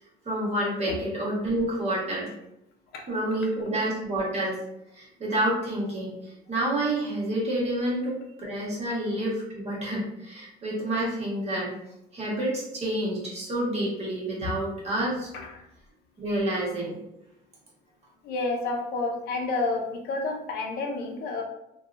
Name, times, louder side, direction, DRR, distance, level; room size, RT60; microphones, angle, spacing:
voice 1, 0.2-2.3 3.1-4.6 4.9-8.1 8.4-11.7 12.1-15.3 16.2-16.9, right 1 dB, 40° right, -5 dB, 1.2 m, -28 dB
voice 2, 18.2-21.4, left 3 dB, 70° left, 2 dB, 0.6 m, -30 dB
2.8 x 2.2 x 2.3 m, 0.84 s
cardioid pair, 110°, 17 cm